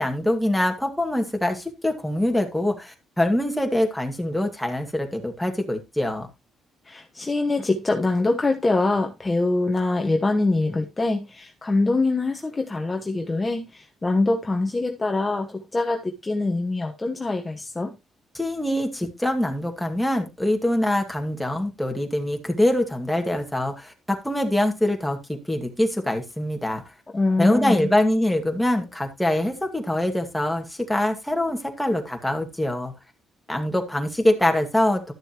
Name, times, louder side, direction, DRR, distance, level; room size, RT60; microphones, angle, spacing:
voice 1, 0.0-6.3 18.3-26.8 27.4-32.9 33.5-35.1, left 1 dB, 5° left, 2.2 m, -24 dB
voice 2, 6.9-17.9 27.1-27.9, left 2 dB, 20° left, 1.2 m, -24 dB
12.5 x 6.9 x 3.0 m
cardioid pair, 90°, 0 cm